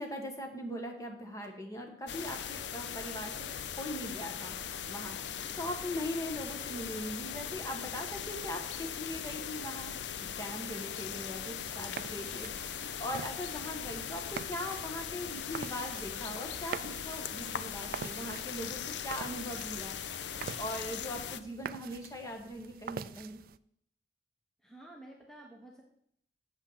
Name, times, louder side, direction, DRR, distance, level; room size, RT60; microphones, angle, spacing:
voice 1, 0.0-3.5 3.8-4.6 4.8-23.4, equal, 20° left, 3 dB, 1.4 m, -40 dB
sound 1, 2.1-21.4, left 8 dB, 85° left, 0.5 m, -40 dB
sound 2, 11.5-23.6, right 7 dB, 55° right, 0.3 m, -46 dB
voice 2, 24.6-25.8, right 1 dB, 5° left, -1 dB, 1.1 m, -51 dB
7.7 x 5.6 x 7.4 m, 0.69 s
head